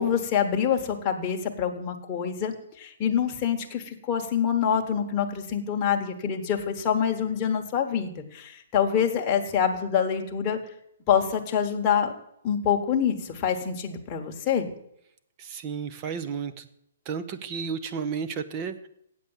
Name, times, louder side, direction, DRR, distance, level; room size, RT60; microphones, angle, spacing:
voice 1, 0.0-10.6 11.1-12.1 12.4-14.7, left 8 dB, 20° left, 2 dB, 1.1 m, -26 dB
voice 2, 15.4-16.7 17.1-18.9, right 6 dB, 25° right, 11 dB, 0.6 m, -32 dB
8.2 x 7.9 x 7.2 m, 0.72 s
hypercardioid pair, 165°, 0 cm